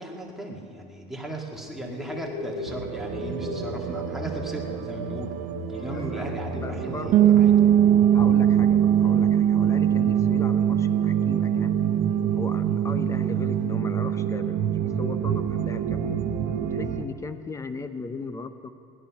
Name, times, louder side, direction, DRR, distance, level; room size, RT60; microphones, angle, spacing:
voice 1, 0.0-5.4 5.7-7.5, right 1 dB, ahead, -2 dB, 1.8 m, -36 dB
Bird, 1.5-13.7, left 4 dB, 65° left, 4.2 m, -43 dB
sound 1, 2.7-17.1, right 8 dB, 55° right, 1.0 m, -30 dB
voice 2, 5.9-7.4 8.1-11.8 12.3-16.2 16.6-18.7, left 3 dB, 15° left, 10 dB, 0.7 m, -37 dB
sound 2, 7.1-16.8, right 10 dB, 40° right, 0.5 m, -22 dB
17.5 x 11.5 x 5.8 m, 2.4 s
supercardioid pair, 130°, 20 cm